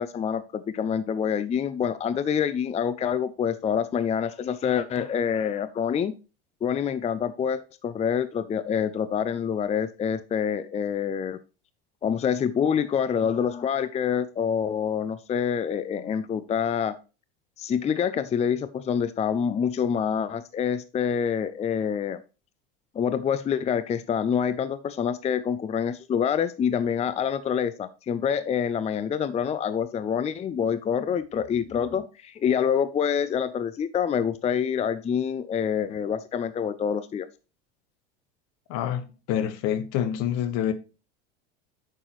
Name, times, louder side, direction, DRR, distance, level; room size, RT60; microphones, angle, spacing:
voice 1, 0.0-6.1 6.6-11.4 12.0-16.9 17.6-22.2 22.9-37.3, left 7 dB, 20° left, 0.5 m, -26 dB
voice 2, 38.7-40.7, left 10 dB, 60° left, 1.3 m, -27 dB
8.8 x 6.7 x 3.0 m
supercardioid pair, 105°, 30 cm